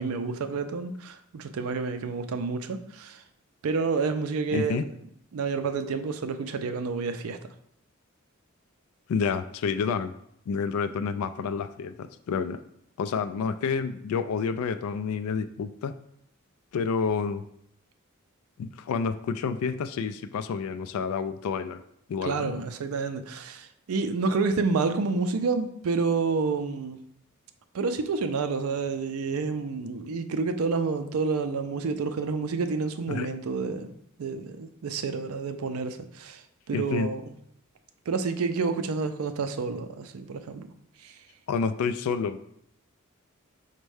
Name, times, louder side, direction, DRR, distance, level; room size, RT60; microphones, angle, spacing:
voice 1, 0.0-3.2 3.6-4.8 5.3-7.4 22.2-27.0 27.7-33.9 34.2-36.4 36.7-37.2 38.1-40.7 41.0-41.1, right 4 dB, 85° right, 0.4 m, -29 dB
voice 2, 4.5-4.9 9.1-10.1 10.5-12.6 13.0-16.0 16.7-17.4 18.6-21.8 22.1-22.6 33.1-33.3 36.7-37.1 41.5-42.4, left 5 dB, 85° left, 0.3 m, -29 dB
5.2 x 2.2 x 4.7 m
head